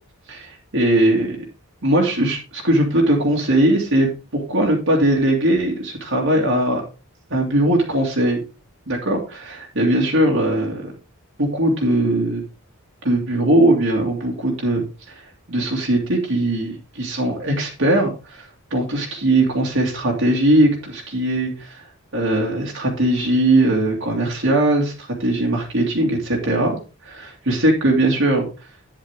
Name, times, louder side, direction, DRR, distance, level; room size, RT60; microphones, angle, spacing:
voice 1, 0.3-1.4 1.8-6.8 7.3-8.4 8.9-10.9 11.4-12.4 13.0-15.2 15.5-21.9 22.1-28.5, right 1 dB, 60° right, -1 dB, 2.4 m, -20 dB
9.9 x 7.7 x 3.7 m, 0.32 s
head